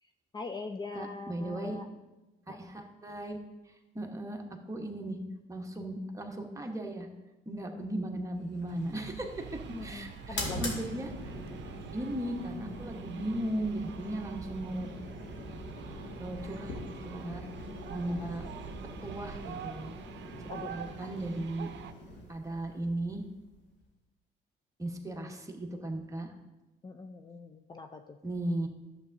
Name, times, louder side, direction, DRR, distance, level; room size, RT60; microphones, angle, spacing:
voice 1, 0.0-1.9 2.5-2.7 7.7-7.8 9.7-10.7 18.1-18.3 20.5-20.8 26.8-28.2, left 4 dB, 20° left, 6 dB, 0.4 m, -43 dB
voice 2, 0.9-1.8 2.5-3.4 3.9-4.4 4.7-5.2 5.5-7.1 7.5-11.3 11.9-14.9 15.9-17.5 17.9-18.4 19.0-20.0 20.7-21.7 22.3-23.2 24.8-26.3 28.2-28.7, right 1 dB, 15° right, 2 dB, 1.1 m, -36 dB
sound 1, 8.5-23.8, left 1 dB, 70° left, 1.9 m, -43 dB
sound 2, 8.7-21.9, right 8 dB, 70° right, 0.6 m, -46 dB
11.0 x 7.4 x 2.6 m, 1.1 s
cardioid pair, 90°, 20 cm